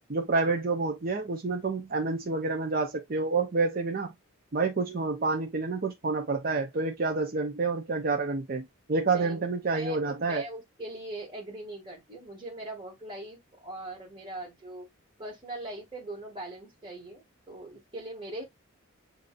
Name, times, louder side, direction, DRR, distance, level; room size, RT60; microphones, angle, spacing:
voice 1, 0.1-4.1 4.5-10.4, right 3 dB, 45° right, 0.6 m, -28 dB
voice 2, 9.0-10.0 10.3-14.9 15.2-18.4, right 1 dB, 20° right, 1.9 m, -41 dB
6.7 x 2.7 x 2.5 m
head